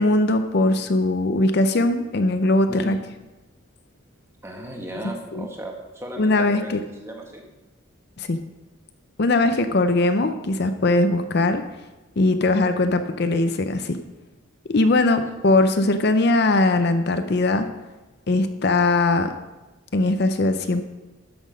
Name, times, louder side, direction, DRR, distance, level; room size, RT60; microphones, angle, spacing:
voice 1, 0.0-3.0 5.3-5.5 6.2-6.8 8.2-8.4 9.2-11.6 12.2-14.0 14.7-17.7 18.3-19.3 19.9-20.8, left 2 dB, 50° left, 9 dB, 0.6 m, -20 dB
voice 2, 2.7-3.0 4.4-6.7 7.0-7.4 15.0-15.3, equal, 15° right, 1 dB, 1.3 m, -36 dB
13.0 x 6.1 x 5.1 m, 1.1 s
head